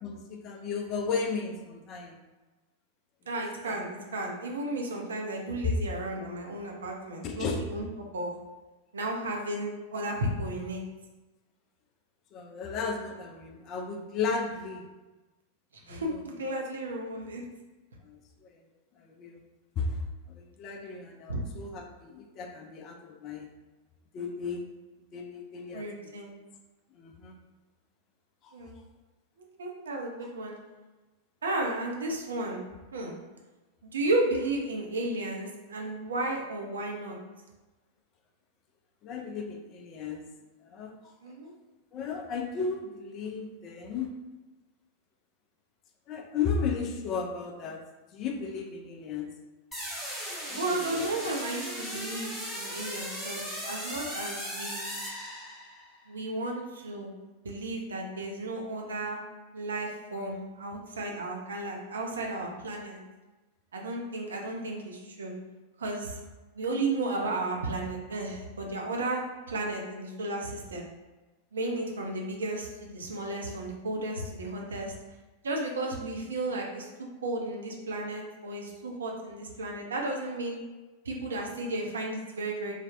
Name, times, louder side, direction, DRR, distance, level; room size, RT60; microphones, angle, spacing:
voice 1, 0.0-2.2 3.6-3.8 5.6-5.7 7.2-7.6 12.3-14.9 15.9-16.2 18.0-18.5 19.0-19.4 19.8-20.0 20.3-23.5 24.1-24.6 25.1-26.1 27.0-27.4 28.4-28.5 39.0-40.2 40.6-40.9 41.9-44.1 46.1-47.8 48.1-49.3 50.5-51.1, left 5 dB, 35° left, 3 dB, 0.4 m, -34 dB
voice 2, 3.3-7.8 8.1-8.3 8.9-10.8 15.9-17.4 21.3-21.4 25.7-26.3 28.5-28.8 29.4-30.6 31.4-32.6 32.9-33.2 33.8-37.2 41.2-41.5 50.6-54.9 56.1-57.1 57.4-59.2 59.5-63.0 63.7-65.3 65.8-66.2 66.5-70.8 71.5-74.9 75.4-76.9 77.2-80.6 81.0-82.7, right 2 dB, 70° right, 0 dB, 0.4 m, -33 dB
sound 1, 49.7-55.9, equal, 10° left, 0.7 m, -37 dB
3.2 x 2.0 x 2.5 m, 1.2 s
figure-of-eight pair, 90°, 0 cm